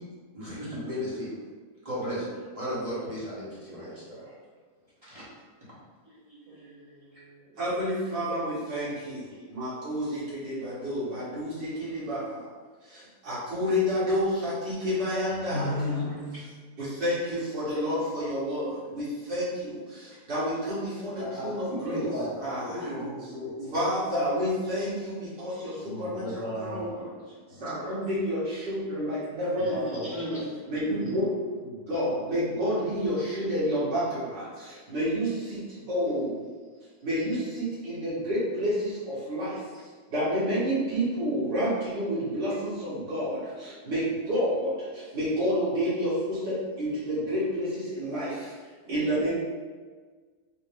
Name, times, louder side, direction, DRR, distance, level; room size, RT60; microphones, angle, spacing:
voice 1, 0.3-1.3 1.8-2.3 2.5-4.3 5.0-5.2 6.1-6.7 15.5-16.4 21.2-23.7 25.8-27.1 27.5-27.7 29.7-30.4 30.9-31.2, equal, 25° right, -10 dB, 1.0 m, -35 dB
voice 2, 6.4-7.5 9.3-9.5 29.4-30.0 35.7-35.8 48.8-49.3, right 2 dB, 40° right, -8 dB, 1.5 m, -42 dB
voice 3, 7.6-12.5 12.8-16.1 16.8-22.0 22.4-22.9 23.7-27.1 27.6-30.1 30.7-36.4 37.0-39.6 40.1-48.5 48.9-49.3, equal, 75° right, -11 dB, 2.3 m, -29 dB
4.5 x 2.1 x 3.4 m, 1.5 s
omnidirectional pair, 1.9 m